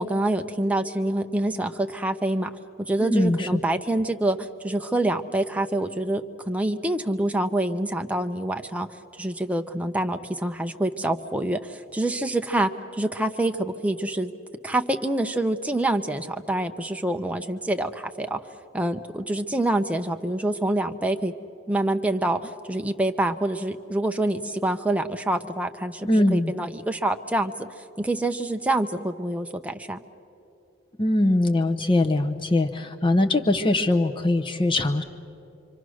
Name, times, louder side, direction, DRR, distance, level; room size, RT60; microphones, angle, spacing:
voice 1, 0.0-2.5 2.9-8.9 9.2-14.3 14.6-18.4 18.7-21.3 21.7-27.7 28.0-30.0, right 1 dB, 5° right, 5 dB, 0.6 m, -26 dB
voice 2, 3.0-3.6 26.0-26.5 31.0-35.0, left 1 dB, 25° left, 7 dB, 0.8 m, -22 dB
27.0 x 24.5 x 6.3 m, 2.8 s
head